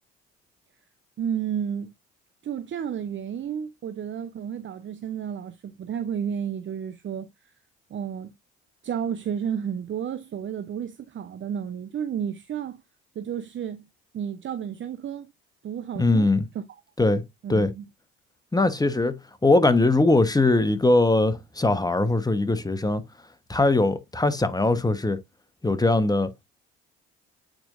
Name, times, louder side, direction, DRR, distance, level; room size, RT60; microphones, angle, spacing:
voice 1, 1.2-1.9 2.4-7.5 7.9-8.3 8.8-12.8 13.2-13.8 14.1-15.3 15.6-16.6 17.4-17.8, right 8 dB, 40° right, 0.7 m, -32 dB
voice 2, 15.9-16.5 17.0-17.2 17.5-17.7 18.5-23.0 23.5-25.2 25.6-26.3, left 2 dB, 15° left, 1.2 m, -21 dB
8.9 x 4.4 x 2.6 m
hypercardioid pair, 60°, 29 cm